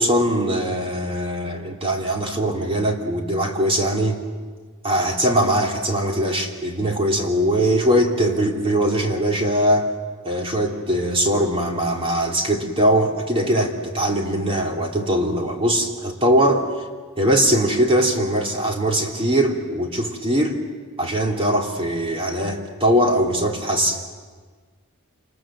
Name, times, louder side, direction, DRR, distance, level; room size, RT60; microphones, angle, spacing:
voice 1, 0.0-4.2 4.8-9.9 10.2-16.7 17.2-20.6 21.0-24.0, right 1 dB, 25° right, 1 dB, 3.2 m, -21 dB
28.0 x 27.5 x 7.7 m, 1.5 s
head